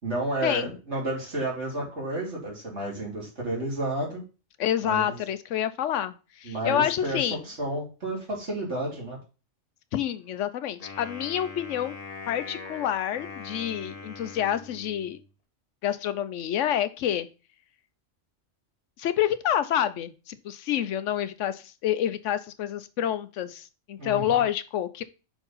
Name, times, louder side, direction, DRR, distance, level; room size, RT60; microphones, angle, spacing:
voice 1, 0.0-4.2 4.8-5.2 6.4-9.2 24.0-24.2, right 1 dB, 65° right, -2 dB, 3.2 m, -31 dB
voice 2, 4.6-7.4 9.9-11.9 12.3-15.2 15.8-17.3 19.0-25.0, left 10 dB, 85° left, 13 dB, 1.0 m, -28 dB
Wind instrument woodwind instrument, 10.8-15.2, left 4 dB, 30° left, 1.4 m, -42 dB
5.8 x 4.5 x 5.5 m, 0.32 s
omnidirectional pair, 1.2 m